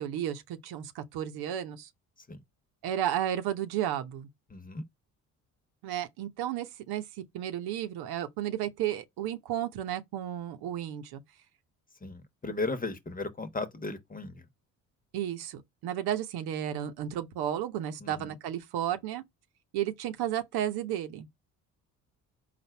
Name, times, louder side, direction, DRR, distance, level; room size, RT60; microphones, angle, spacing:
voice 1, 0.0-1.9 2.8-4.3 5.8-7.0 7.3-11.2 15.1-19.2 19.7-21.3, right 11 dB, 75° right, 0.9 m, -33 dB
voice 2, 4.5-4.8 12.0-14.5 18.0-18.3, left 3 dB, 20° left, 1.1 m, -36 dB
4.2 x 2.5 x 4.4 m
supercardioid pair, 70°, 38 cm